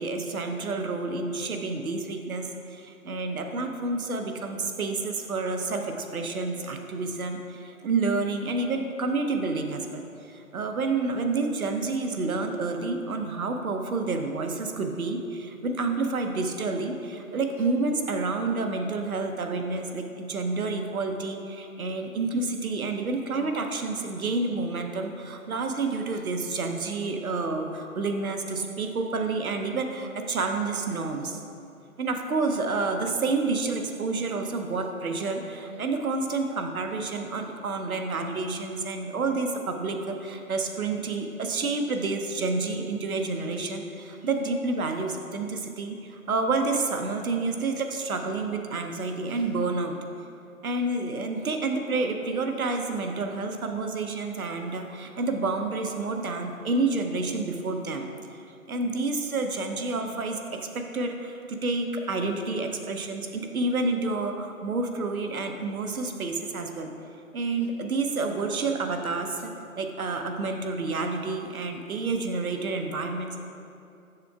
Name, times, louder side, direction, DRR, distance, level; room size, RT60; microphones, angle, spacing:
voice 1, 0.0-31.4 32.0-50.0 50.6-58.4 58.7-66.9 67.3-69.5 69.8-73.4, right 3 dB, 70° right, 4 dB, 0.8 m, -29 dB
6.7 x 6.6 x 2.3 m, 2.6 s
figure-of-eight pair, 170°, 44 cm